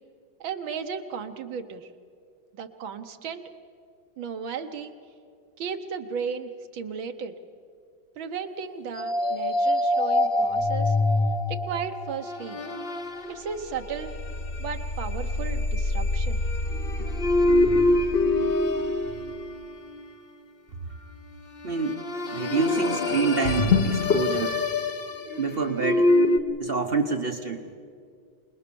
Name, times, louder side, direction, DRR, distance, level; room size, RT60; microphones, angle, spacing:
voice 1, 0.4-1.9 2.5-3.5 4.2-4.9 5.6-7.4 8.2-11.0 11.5-12.6 13.3-14.1 14.6-16.4, right 6 dB, 80° right, 7 dB, 1.9 m, -35 dB
sound 1, 9.0-20.1 21.6-26.4, left 2 dB, 40° left, 0.8 m, -25 dB
voice 2, 21.6-22.0 22.3-24.6 25.4-26.1 26.6-27.6, right 4 dB, 45° right, 6 dB, 0.8 m, -27 dB
25.5 x 20.5 x 6.9 m, 2.3 s
omnidirectional pair, 2.1 m